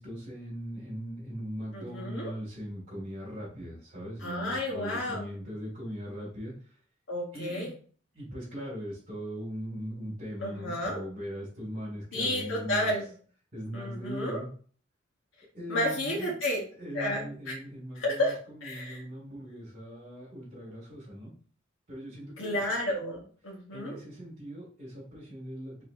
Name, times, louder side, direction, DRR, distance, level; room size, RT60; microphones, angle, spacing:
voice 1, 0.0-6.5 7.3-7.7 8.1-12.9 13.5-14.5 15.5-16.3 16.8-21.3 21.9-22.6 23.7-25.8, equal, 45° right, -8 dB, 2.2 m, -40 dB
voice 2, 1.7-2.3 4.2-5.3 7.1-7.7 10.4-11.0 12.1-13.1 13.7-14.4 15.7-16.6 16.9-17.5 17.9-18.3 18.6-19.0 22.4-24.0, left 1 dB, 80° left, -2 dB, 1.1 m, -31 dB
4.8 x 4.1 x 2.5 m, 0.44 s
head